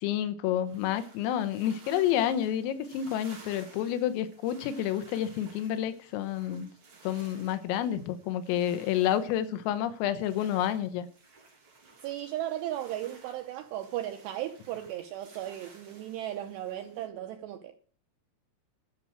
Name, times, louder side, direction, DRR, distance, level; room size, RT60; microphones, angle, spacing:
voice 1, 0.0-6.7 7.1-11.1, left 11 dB, 85° left, 3.7 m, -29 dB
sound 1, 0.6-17.1, right 4 dB, 35° right, 2.2 m, -56 dB
voice 2, 12.0-17.8, right 12 dB, 90° right, 2.4 m, -36 dB
12.5 x 6.1 x 8.7 m
omnidirectional pair, 6.0 m